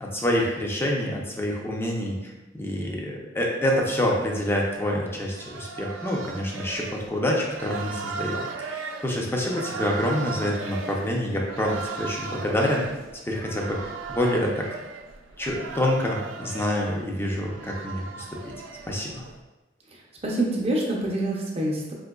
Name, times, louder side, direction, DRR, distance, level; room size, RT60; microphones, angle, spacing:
voice 1, 0.0-12.8 13.3-13.8 14.1-14.7 15.4-18.5 18.9-19.2, left 1 dB, 15° left, -1 dB, 0.5 m, -27 dB
sound 1, 3.6-19.4, right 4 dB, 85° right, 0.3 m, -37 dB
voice 2, 19.9-21.9, right 1 dB, 35° right, -2 dB, 0.6 m, -27 dB
3.8 x 2.7 x 2.3 m, 1.0 s
head